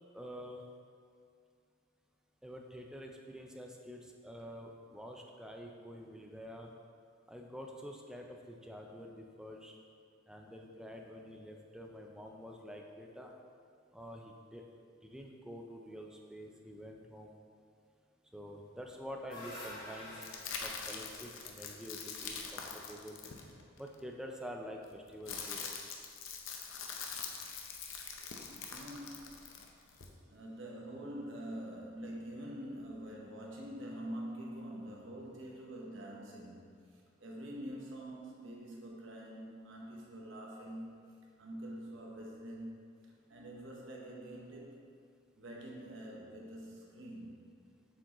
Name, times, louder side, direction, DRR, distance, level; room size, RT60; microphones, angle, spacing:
voice 1, 0.1-0.6 2.4-6.7 7.3-9.8 10.3-13.3 13.9-14.6 15.0-17.4 18.3-20.3 20.6-23.2 23.8-25.8, equal, 5° right, 1 dB, 0.4 m, -47 dB
Land Fart, 18.8-23.1, left 1 dB, 50° left, 1.5 m, -50 dB
sound 1, 20.2-23.9 24.8-30.1, left 5 dB, 80° left, 0.6 m, -44 dB
voice 2, 28.7-29.4 30.3-44.9 45.3-47.4, right 1 dB, 70° right, -2 dB, 1.0 m, -46 dB
7.4 x 4.7 x 3.0 m, 2.2 s
head